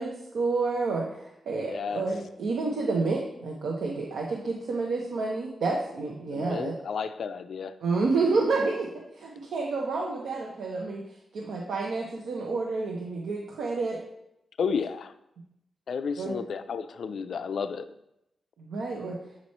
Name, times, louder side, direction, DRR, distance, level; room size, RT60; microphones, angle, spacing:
voice 1, 0.0-6.7 7.8-8.9 9.2-11.0 11.3-14.0 16.2-16.4 18.6-19.2, right 3 dB, 90° right, -2 dB, 0.8 m, -29 dB
voice 2, 1.6-2.1 6.3-7.7 14.6-15.1 15.9-17.9, left 6 dB, 70° left, 11 dB, 0.3 m, -32 dB
7.5 x 3.0 x 4.2 m, 0.85 s
cardioid pair, 85°, 0 cm